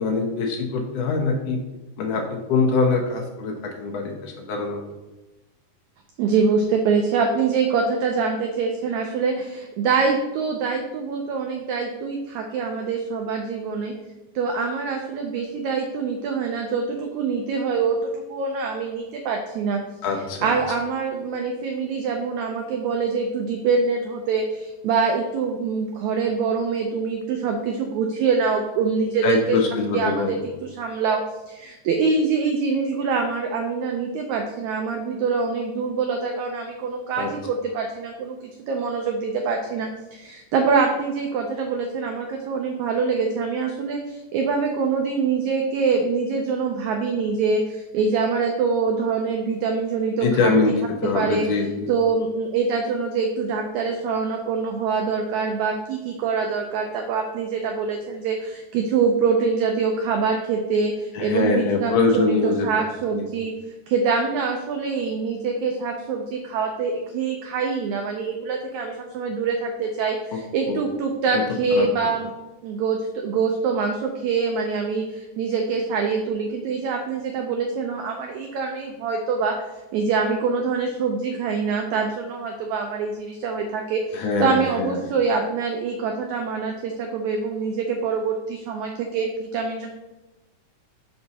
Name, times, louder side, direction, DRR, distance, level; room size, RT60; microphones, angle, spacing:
voice 1, 0.0-1.6 2.0-4.8 20.0-20.6 29.2-30.4 37.2-37.3 50.2-51.9 61.1-62.7 63.1-63.3 70.3-70.4 70.7-70.8 71.3-71.4 71.7-71.9 84.1-85.0, left 4 dB, 75° left, 2 dB, 2.1 m, -23 dB
voice 2, 6.2-13.9 14.3-19.8 20.4-29.6 29.9-31.2 31.5-50.5 51.1-51.4 51.9-63.5 63.9-72.3 72.6-79.5 79.9-89.9, right 5 dB, 85° right, 3 dB, 1.6 m, -24 dB
5.8 x 5.3 x 4.1 m, 1.1 s
omnidirectional pair, 4.0 m